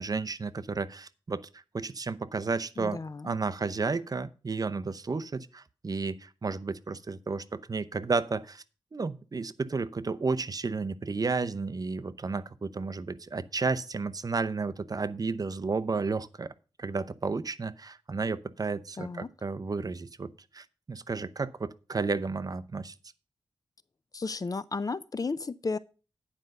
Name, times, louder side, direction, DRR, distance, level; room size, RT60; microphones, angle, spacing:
voice 1, 0.0-3.0 3.2-8.6 8.9-16.5 16.8-22.9, right 4 dB, 40° right, 0.7 m, -32 dB
voice 2, 2.8-3.3 19.0-19.3 24.1-25.8, left 4 dB, 40° left, 0.5 m, -33 dB
10.0 x 5.4 x 6.4 m
wide cardioid pair, 90°, 10 cm